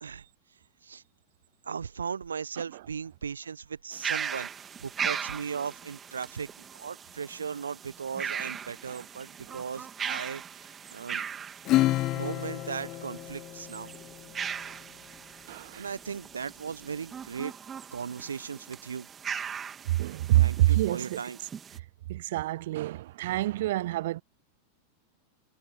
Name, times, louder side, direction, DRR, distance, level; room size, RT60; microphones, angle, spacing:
voice 1, 1.6-4.5 4.8-11.2 12.1-13.9 15.7-17.5 17.9-19.1 20.4-21.4, right 6 dB, 70° right, 1.3 m, -37 dB
sound 1, 3.9-21.8, right 7 dB, 20° right, 2.8 m, -39 dB
Acoustic guitar / Strum, 11.6-14.6, left 16 dB, 35° left, 0.4 m, -29 dB
voice 2, 15.5-15.9 19.8-21.2 22.1-24.2, right 16 dB, 55° right, 0.3 m, -27 dB
figure-of-eight pair, 90°, 0 cm